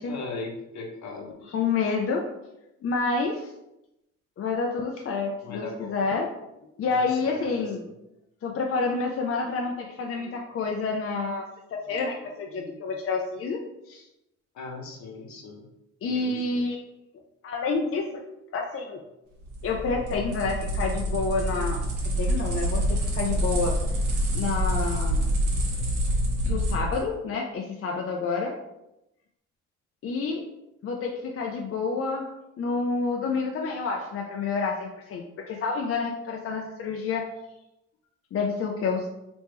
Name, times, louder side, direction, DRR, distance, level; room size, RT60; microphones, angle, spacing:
voice 1, 0.0-1.9 5.4-5.9 6.9-7.6 14.5-15.7 16.1-16.4, left 3 dB, 70° left, 1 dB, 0.9 m, -39 dB
voice 2, 1.5-2.2 2.8-3.5 4.4-6.3 6.6-7.8 8.4-14.0 16.0-16.8 17.4-18.1 18.5-19.0 19.6-23.8 24.3-25.2 26.5-28.6 30.0-30.4 30.8-32.3 32.6-37.3 38.3-39.1, left 4 dB, 45° left, 1 dB, 0.5 m, -29 dB
sound 1, 19.4-27.0, equal, 75° right, 1.3 m, -26 dB
3.4 x 3.0 x 3.2 m, 0.89 s
cardioid pair, 90°, 30 cm